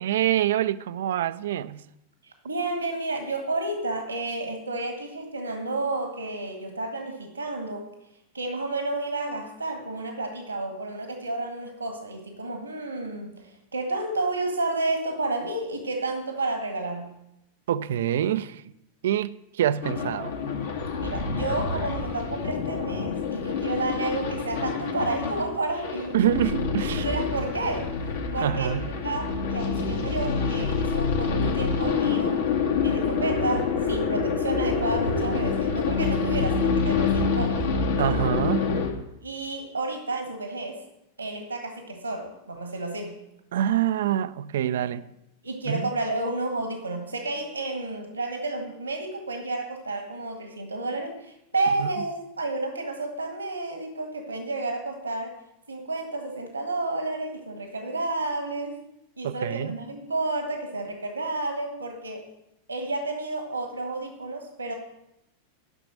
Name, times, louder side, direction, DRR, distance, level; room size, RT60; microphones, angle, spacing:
voice 1, 0.0-1.8 17.7-18.7 19.0-20.3 26.1-27.1 28.4-28.9 38.0-38.7 43.5-45.0 45.7-45.9 51.8-51.9 59.2-59.8, right 11 dB, 60° right, 0.4 m, -26 dB
voice 2, 2.2-7.9 8.3-17.1 21.0-26.2 26.9-32.4 32.8-37.7 39.2-40.8 41.2-43.2 44.8-44.9 45.4-55.4 55.7-58.8 59.2-62.3 62.7-64.7, right 2 dB, 85° right, 1.6 m, -31 dB
sound 1, 19.8-38.9, left 5 dB, 60° left, 1.9 m, -27 dB
11.5 x 6.0 x 7.3 m
figure-of-eight pair, 90°, 0 cm